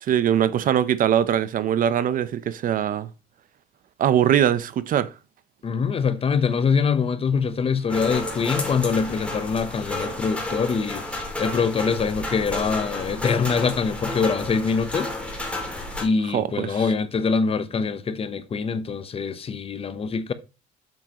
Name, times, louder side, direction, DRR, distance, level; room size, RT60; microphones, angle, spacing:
voice 1, 0.0-3.1 4.0-5.1 16.3-16.9, right 9 dB, 55° right, 0.7 m, -22 dB
voice 2, 5.6-11.0 11.4-15.1 16.0-20.3, left 5 dB, 35° left, 0.9 m, -24 dB
sound 1, 7.9-16.1, left 2 dB, 5° left, 2.7 m, -31 dB
7.6 x 7.5 x 3.0 m
cardioid pair, 110°, 17 cm